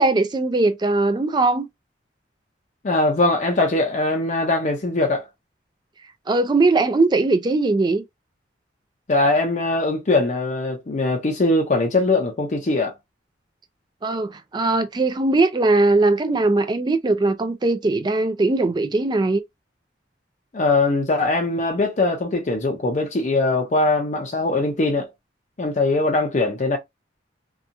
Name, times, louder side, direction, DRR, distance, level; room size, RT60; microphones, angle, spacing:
voice 1, 0.0-1.7 6.3-8.0 14.0-19.4, right 2 dB, 25° right, 0.3 m, -20 dB
voice 2, 2.8-5.2 9.1-12.9 20.5-25.1 25.6-26.8, left 2 dB, 40° left, 0.5 m, -21 dB
2.8 x 2.3 x 2.5 m
head